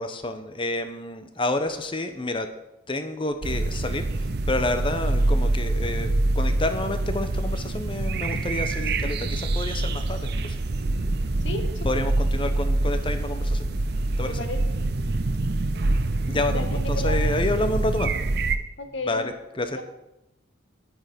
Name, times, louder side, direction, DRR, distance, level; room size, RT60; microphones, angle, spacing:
voice 1, 0.0-2.5 2.9-10.6 11.8-13.7 14.2-14.4 16.3-18.1 19.0-19.8, left 2 dB, 25° left, 8 dB, 0.9 m, -29 dB
sound 1, 3.4-18.6, right 2 dB, 55° right, 0.7 m, -25 dB
voice 2, 11.4-11.9 14.2-14.8 16.5-17.2 18.8-19.3 19.7-19.8, left 2 dB, 70° left, 6 dB, 1.5 m, -33 dB
10.0 x 9.8 x 5.2 m, 0.90 s
head